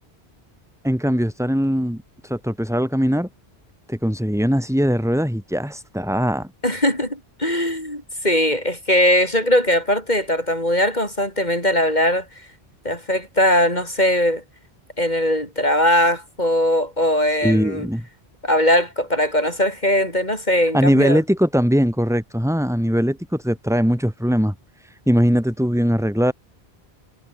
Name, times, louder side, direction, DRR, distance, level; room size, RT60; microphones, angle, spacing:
voice 1, 0.8-3.3 3.9-6.5 17.4-18.1 20.7-24.5 24.8-26.3, equal, 5° right, 5.4 m, -20 dB
voice 2, 6.6-12.3 12.8-14.4 15.0-17.9 18.4-21.2, left 1 dB, 45° left, 8.0 m, -20 dB
omnidirectional pair, 1.1 m